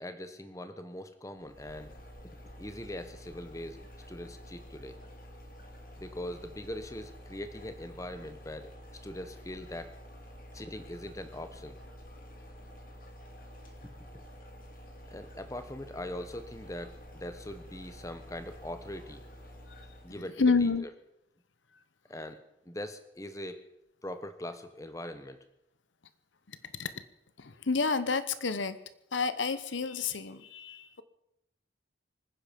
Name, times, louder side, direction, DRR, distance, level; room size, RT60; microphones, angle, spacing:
voice 1, 0.0-1.9 2.6-5.0 6.0-8.7 9.0-10.0 10.5-11.7 14.1-14.2 15.1-19.2 20.0-20.9 22.1-22.4 22.6-23.6 24.0-25.4, left 1 dB, 15° left, 9 dB, 1.2 m, -41 dB
sound 1, 1.4-20.3, equal, 45° left, 2.6 m, -49 dB
voice 2, 20.4-20.8 26.8-26.9 27.4-28.8 29.1-31.0, left 4 dB, 85° left, 13 dB, 1.0 m, -29 dB
25.0 x 10.0 x 5.3 m, 0.83 s
head